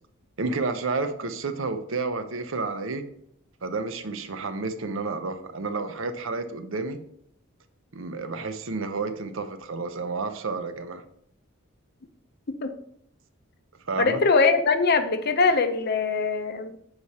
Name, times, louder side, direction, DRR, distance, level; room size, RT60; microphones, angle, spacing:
voice 1, 0.4-3.0 3.6-7.0 7.9-11.0 13.9-14.2, right 3 dB, 65° right, 9 dB, 0.7 m, -30 dB
voice 2, 14.0-16.8, left 4 dB, 50° left, 9 dB, 0.6 m, -22 dB
7.1 x 4.8 x 4.2 m, 0.71 s
head